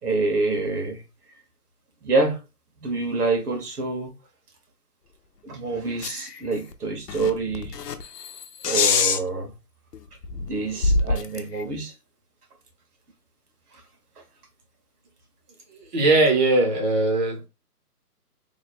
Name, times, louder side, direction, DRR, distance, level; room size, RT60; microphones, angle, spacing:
voice 1, 0.0-1.0 2.0-2.4 2.8-4.1 5.4-7.8 8.6-9.5 10.4-11.9 13.7-13.8, right 3 dB, 70° right, 1.3 m, -26 dB
sound 1, 6.0-6.4 6.7-6.8 7.1-9.2 9.9-10.0 10.2-11.6, left 4 dB, 85° left, 0.7 m, -24 dB
voice 2, 15.7-17.5, right 2 dB, 30° right, 0.6 m, -20 dB
3.1 x 2.2 x 4.1 m
hypercardioid pair, 155°, 47 cm